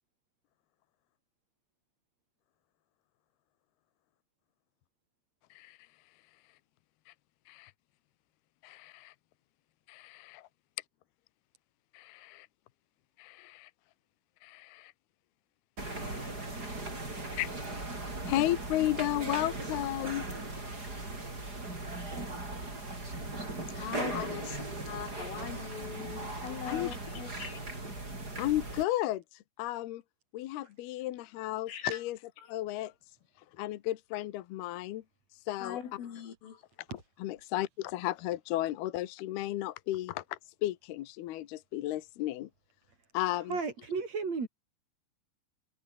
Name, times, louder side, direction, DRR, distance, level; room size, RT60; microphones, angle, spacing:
voice 1, 8.6-9.1 9.9-10.5 11.9-12.5 13.2-13.7 14.4-14.9 15.8-16.3 17.3-17.5 18.3-20.2 24.1-24.3 24.9-25.0 26.6-27.3 28.4-30.0 30.3-32.2 32.5-32.9 33.5-35.0 35.5-35.8 37.2-42.5 43.1-43.6, left 15 dB, 70° left, 2.6 m, -34 dB
sound 1, 15.8-28.8, right 2 dB, 20° right, 6.8 m, -38 dB
voice 2, 23.7-24.6 24.9-27.6 31.7-32.0 35.6-36.6, left 8 dB, 85° left, 6.3 m, -40 dB
voice 3, 43.3-44.5, right 4 dB, 35° right, 4.9 m, -35 dB
omnidirectional pair, 5.6 m